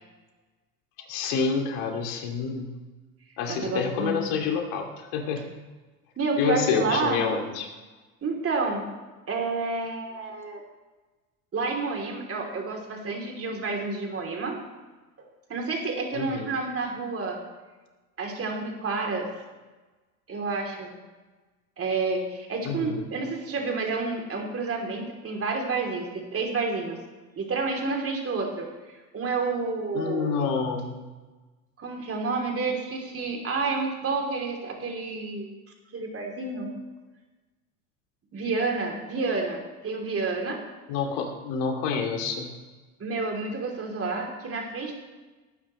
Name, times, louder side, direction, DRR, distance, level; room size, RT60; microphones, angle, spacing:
voice 1, 1.1-2.7 3.4-4.9 5.1-5.4 6.4-7.7 16.1-16.5 22.6-23.0 29.9-30.9 40.9-42.5, left 5 dB, 65° left, 3 dB, 2.5 m, -28 dB
voice 2, 3.5-4.2 6.2-7.2 8.2-8.9 9.3-10.6 11.5-14.6 15.5-17.4 18.2-19.3 20.3-20.9 21.8-27.0 27.4-30.5 31.8-35.5 35.9-36.7 38.3-40.6 43.0-44.9, right 3 dB, 30° right, 1 dB, 3.3 m, -29 dB
18.5 x 9.4 x 3.2 m, 1.2 s
hypercardioid pair, 85°, 44 cm